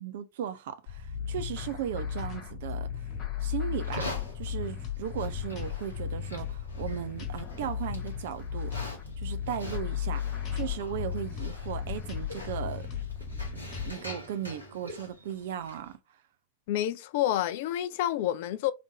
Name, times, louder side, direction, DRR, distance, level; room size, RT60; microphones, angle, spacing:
voice 1, 0.0-3.0 3.4-8.7 9.2-10.2 10.5-12.9 13.5-16.0, right 10 dB, 55° right, 0.6 m, -37 dB
sound 1, 0.9-13.9, left 8 dB, 30° left, 1.3 m, -35 dB
Livestock farm animals working animals, 3.7-15.9, left 1 dB, 85° right, 1.5 m, -45 dB
voice 2, 16.7-18.7, left 12 dB, 50° left, 0.4 m, -28 dB
3.6 x 3.3 x 3.7 m
figure-of-eight pair, 90°, 0 cm